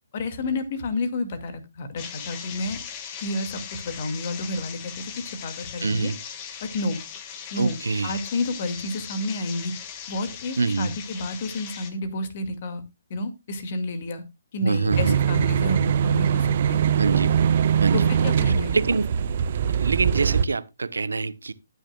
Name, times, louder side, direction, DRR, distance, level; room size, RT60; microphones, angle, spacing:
voice 1, 0.1-2.8 3.2-6.1 6.6-7.0 7.5-9.7 10.1-12.8 13.1-14.2 14.5-16.8 17.9-18.7, left 2 dB, 45° left, 2.2 m, -30 dB
sound 1, 2.0-11.9, left 8 dB, 30° left, 1.6 m, -39 dB
voice 2, 5.8-6.2 7.6-8.1 10.6-10.9 14.6-15.2 17.0-17.3 17.8-18.1 18.7-19.1 19.7-21.5, right 4 dB, 85° right, 0.9 m, -25 dB
sound 2, 14.9-20.4, right 8 dB, 50° right, 0.7 m, -22 dB
18.5 x 6.4 x 2.3 m
hypercardioid pair, 145°, 0 cm